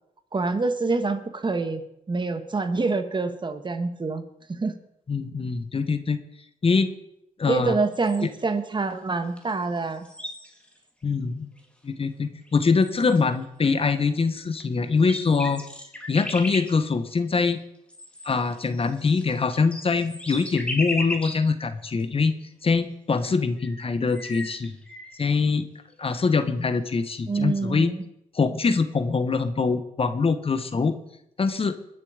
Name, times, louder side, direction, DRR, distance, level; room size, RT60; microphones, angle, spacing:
voice 1, 0.3-1.8 2.1-4.2 4.5-4.7 7.5-10.1 27.3-28.1, right 3 dB, 30° right, 9 dB, 1.5 m, -26 dB
voice 2, 5.1-6.2 6.6-6.9 7.4-7.7 8.2-8.3 11.0-11.5 11.8-15.6 16.1-17.6 18.2-22.3 22.6-24.8 25.2-25.7 26.0-27.9 28.3-31.0 31.4-31.7, left 4 dB, 40° left, 11 dB, 1.2 m, -23 dB
sound 1, 7.9-8.5 9.4-9.5 9.8-10.8 11.6-11.7 12.4-12.5 12.8-13.4 14.5-14.6 14.9-16.7 17.9-21.4 22.0-22.1 23.2-23.3 23.6-25.3, left 1 dB, 5° left, 2.7 m, -36 dB
21.5 x 7.2 x 5.0 m, 0.80 s
cardioid pair, 65°, 15 cm